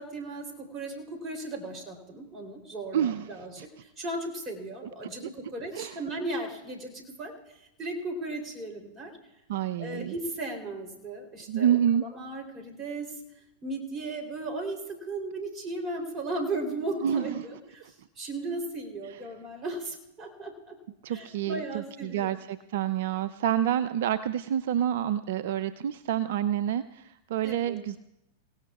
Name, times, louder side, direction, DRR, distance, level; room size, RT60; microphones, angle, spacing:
voice 1, 0.0-9.1 9.8-13.2 13.6-20.8 21.1-22.3 27.4-27.8, right 2 dB, 25° right, 2 dB, 3.3 m, -36 dB
voice 2, 2.9-3.3 5.7-6.0 9.5-10.1 11.5-12.0 17.0-17.2 17.8-17.9 21.0-28.0, right 10 dB, 65° right, 14 dB, 0.4 m, -28 dB
28.0 x 17.0 x 2.4 m, 0.87 s
hypercardioid pair, 100°, 0 cm